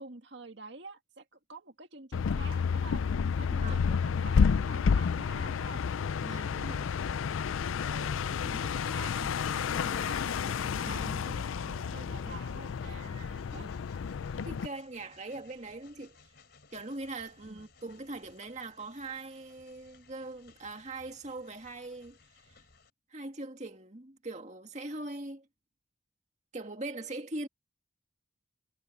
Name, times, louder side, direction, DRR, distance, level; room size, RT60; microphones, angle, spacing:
voice 1, 0.0-3.0 3.4-5.8 7.8-13.1 13.5-13.7 17.5-17.7, right 3 dB, 60° right, 2.2 m, -48 dB
sound 1, 2.1-14.7, left 6 dB, 90° left, 0.4 m, -30 dB
sound 2, 2.4-14.5, right 1 dB, 80° right, 4.6 m, -63 dB
voice 2, 3.6-3.9 6.2-6.9 10.8-11.3 12.8-13.7 14.4-16.2 16.7-22.2 22.5-22.6 23.1-25.5 26.5-27.5, right 2 dB, 35° right, 2.1 m, -41 dB
Train, 8.6-22.9, left 4 dB, 55° left, 3.8 m, -60 dB
head